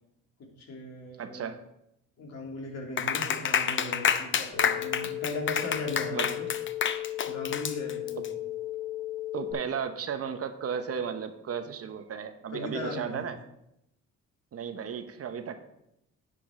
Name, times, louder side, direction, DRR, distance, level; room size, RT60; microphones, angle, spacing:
voice 1, 0.6-1.5 2.2-6.5 7.3-8.3 12.5-13.3, left 2 dB, 60° left, 0 dB, 2.6 m, -38 dB
voice 2, 1.2-1.6 6.1-6.3 9.3-13.4 14.5-15.6, right 7 dB, 50° right, 9 dB, 0.9 m, -34 dB
Clapping, 3.0-8.3, left 7 dB, 40° left, 0.6 m, -28 dB
sound 1, 4.5-9.5, left 14 dB, 15° left, 4.0 m, -35 dB
10.5 x 7.6 x 3.7 m, 0.81 s
cardioid pair, 90°, 30 cm